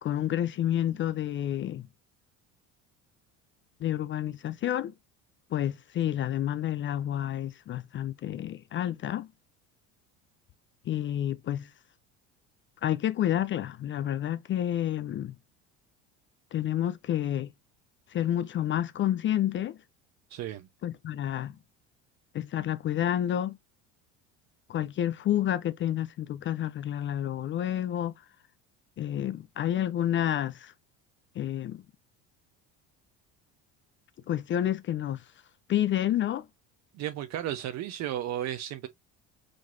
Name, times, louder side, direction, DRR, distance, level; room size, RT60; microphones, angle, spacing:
voice 1, 0.0-1.9 3.8-4.9 5.5-9.3 10.9-11.7 12.8-15.3 16.5-17.5 18.1-19.8 20.8-21.6 22.3-23.6 24.7-28.1 29.0-30.7 31.4-31.8 34.3-35.2 35.7-36.5, left 11 dB, 35° left, 0.5 m, -29 dB
voice 2, 20.3-20.7 36.9-38.9, right 12 dB, 55° right, 0.7 m, -34 dB
5.0 x 4.0 x 2.5 m
cardioid pair, 115°, 33 cm